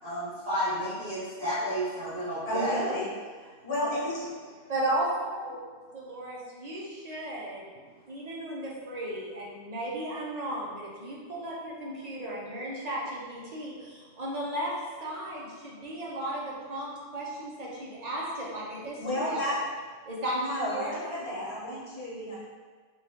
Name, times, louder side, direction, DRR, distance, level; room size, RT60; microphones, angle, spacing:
voice 1, 0.0-2.8, equal, 65° right, -13 dB, 1.7 m, -31 dB
voice 2, 2.5-3.1 3.4-4.3 19.0-19.6 20.3-22.4, equal, 90° left, -7 dB, 1.3 m, -32 dB
voice 3, 4.7-5.6 5.9-7.6 8.1-14.7 15.0-19.6 20.1-21.1, right 1 dB, 45° right, -5 dB, 0.7 m, -35 dB
4.2 x 2.3 x 3.5 m, 1.5 s
omnidirectional pair, 1.1 m